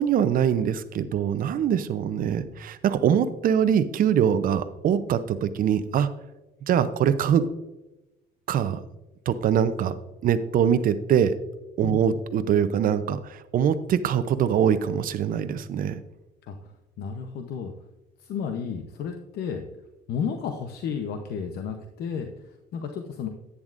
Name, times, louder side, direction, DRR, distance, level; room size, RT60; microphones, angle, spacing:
voice 1, 0.0-6.1 6.7-7.5 8.5-8.8 9.3-9.9 10.2-11.4 11.8-16.0, right 8 dB, 55° right, 13 dB, 0.7 m, -23 dB
voice 2, 11.8-12.1 16.4-16.7 17.0-17.7 18.2-19.6 20.1-23.3, left 6 dB, 70° left, 5 dB, 0.8 m, -32 dB
10.5 x 9.8 x 2.6 m, 1.0 s
cardioid pair, 110°, 17 cm